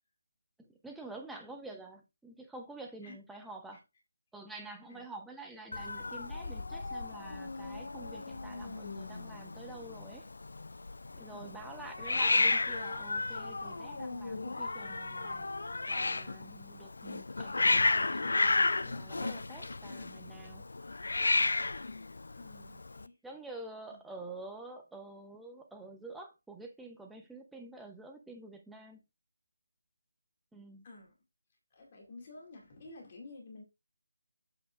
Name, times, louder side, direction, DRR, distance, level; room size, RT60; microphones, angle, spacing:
voice 1, 0.6-3.8 4.3-10.3 11.1-15.5 15.9-20.6 23.2-29.0 30.5-30.9, right 2 dB, ahead, 0.8 m, -48 dB
Hiss, 5.7-23.1, left 3 dB, 55° left, 0.5 m, -33 dB
voice 2, 11.3-11.8 22.3-23.2 23.9-24.0 30.8-31.2 31.7-33.6, left 2 dB, 30° left, 2.4 m, -51 dB
7.8 x 6.8 x 2.5 m
figure-of-eight pair, 155°, 0 cm